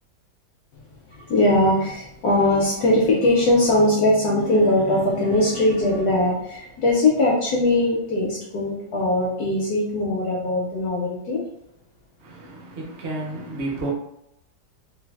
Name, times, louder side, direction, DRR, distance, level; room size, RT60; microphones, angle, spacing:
voice 1, 1.1-11.4, left 1 dB, 75° left, 0.9 m, -20 dB
voice 2, 12.2-13.9, right 2 dB, 60° right, 0.7 m, -31 dB
3.2 x 2.2 x 2.3 m
omnidirectional pair, 2.2 m